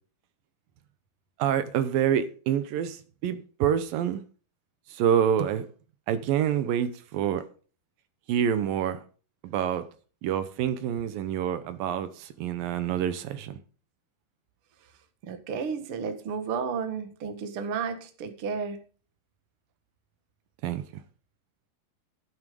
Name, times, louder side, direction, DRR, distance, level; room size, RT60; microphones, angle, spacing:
voice 1, 1.4-4.2 4.9-5.7 6.1-7.4 8.3-9.0 9.4-9.9 10.2-13.6 20.6-20.8, right 9 dB, 70° right, 2.4 m, -27 dB
voice 2, 15.2-18.8, right 6 dB, 55° right, 1.6 m, -32 dB
11.5 x 9.3 x 5.3 m
omnidirectional pair, 4.7 m